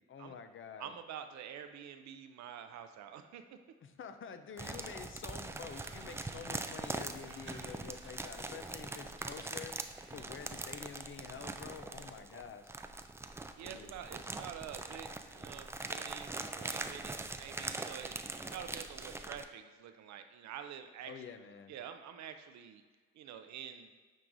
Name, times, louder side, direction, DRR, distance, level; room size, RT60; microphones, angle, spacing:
voice 1, 0.0-0.9 3.8-9.8 10.1-12.7 13.6-13.9 21.1-21.7, left 6 dB, 45° left, 9 dB, 0.5 m, -48 dB
voice 2, 0.8-3.6 13.6-21.2 21.7-22.8 23.1-23.9, right 9 dB, 70° right, 8 dB, 0.6 m, -47 dB
sound 1, 4.6-19.4, right 2 dB, 10° right, 0.3 m, -42 dB
Crumpling crinkling, 5.6-11.4 11.7-11.8, right 3 dB, 40° right, 1.3 m, -59 dB
9.1 x 4.7 x 2.6 m, 1.5 s
cardioid pair, 80°, 29 cm